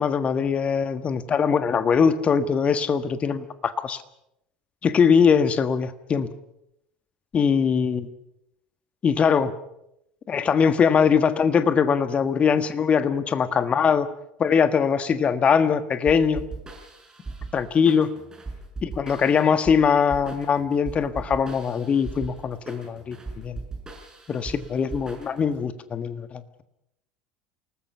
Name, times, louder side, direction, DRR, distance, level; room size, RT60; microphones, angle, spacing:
voice 1, 0.0-4.0 4.8-6.3 7.3-8.1 9.0-9.5 10.3-14.1 14.4-16.4 17.5-18.1 18.8-23.6 24.3-26.6, left 6 dB, 30° left, 11 dB, 1.6 m, -22 dB
sound 1, 16.1-25.6, right 3 dB, 15° right, 6.1 m, -39 dB
28.5 x 19.5 x 5.8 m, 0.81 s
figure-of-eight pair, 70°, 4 cm